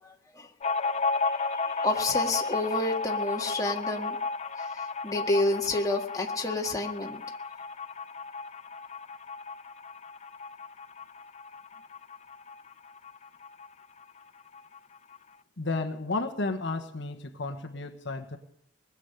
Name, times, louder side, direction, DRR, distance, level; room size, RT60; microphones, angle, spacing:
voice 1, 0.0-0.5 1.5-4.2 4.6-7.2, left 2 dB, 15° left, 1 dB, 1.7 m, -30 dB
sound 1, 0.6-13.7 14.0-14.1 14.4-15.2, left 4 dB, 30° left, 0.5 m, -33 dB
voice 2, 15.6-18.4, left 3 dB, 60° left, 6 dB, 1.3 m, -32 dB
20.5 x 7.3 x 9.4 m, 0.70 s
head